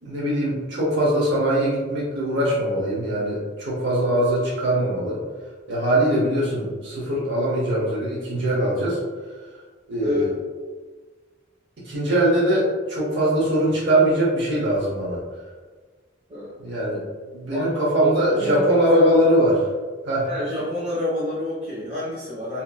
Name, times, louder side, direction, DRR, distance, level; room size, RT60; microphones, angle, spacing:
voice 1, 0.0-5.2 5.7-9.0 9.9-10.3 11.8-15.2 16.6-17.0 17.3-19.7 20.1-20.3, right 1 dB, 65° right, -6 dB, 0.8 m, -21 dB
voice 2, 10.0-10.3 16.3-16.6 17.5-19.1 20.3-22.6, left 1 dB, 35° right, -12 dB, 1.0 m, -28 dB
2.8 x 2.6 x 2.3 m, 1.4 s
head